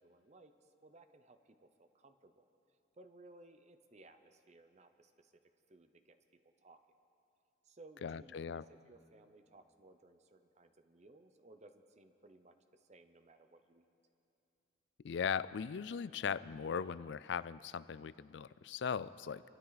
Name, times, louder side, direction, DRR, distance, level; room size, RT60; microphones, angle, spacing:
voice 1, 0.0-2.5 3.0-5.4 5.7-6.2 6.6-6.8 7.6-13.8, right 2 dB, 35° right, 8 dB, 0.7 m, -61 dB
voice 2, 8.0-8.6 15.0-19.4, left 7 dB, 60° left, 17 dB, 0.4 m, -39 dB
26.5 x 13.0 x 4.0 m, 2.7 s
head